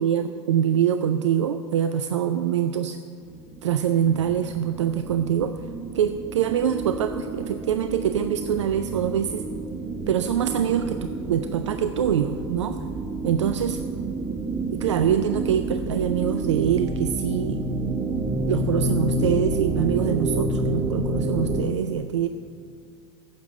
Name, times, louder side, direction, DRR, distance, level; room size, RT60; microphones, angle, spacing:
voice 1, 0.0-3.0 3.6-5.7 5.9-9.4 10.1-12.8 13.2-13.8 14.7-17.6 18.5-22.3, right 9 dB, 70° right, 9 dB, 0.5 m, -24 dB
sound 1, 3.3-21.7, right 2 dB, 25° right, 0.9 m, -29 dB
Keyboard (musical), 4.1-7.6, right 5 dB, 5° left, 1.3 m, -52 dB
9.5 x 7.8 x 8.4 m, 2.4 s
figure-of-eight pair, 90°, 16 cm